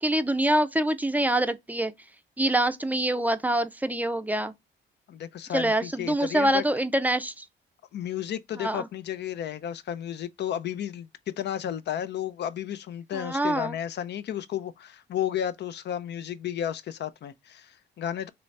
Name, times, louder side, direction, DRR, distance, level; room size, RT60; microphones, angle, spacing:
voice 1, 0.0-1.9 2.4-4.5 5.5-7.4 8.6-8.9 13.1-13.8, right 1 dB, 10° right, 0.5 m, -25 dB
voice 2, 5.1-6.6 7.9-18.3, left 10 dB, 60° left, 0.5 m, -33 dB
3.9 x 3.2 x 3.2 m
cardioid pair, 90°, 20 cm